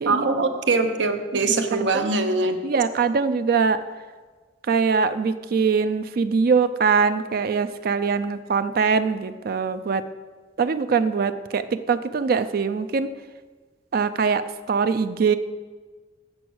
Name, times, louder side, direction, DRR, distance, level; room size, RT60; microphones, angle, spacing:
voice 1, 0.1-2.6, right 3 dB, 80° right, 7 dB, 0.8 m, -22 dB
voice 2, 1.6-2.1 2.6-3.8 4.7-10.0 10.6-13.1 13.9-15.4, right 5 dB, 55° right, 12 dB, 0.4 m, -22 dB
7.6 x 6.9 x 6.2 m, 1.4 s
head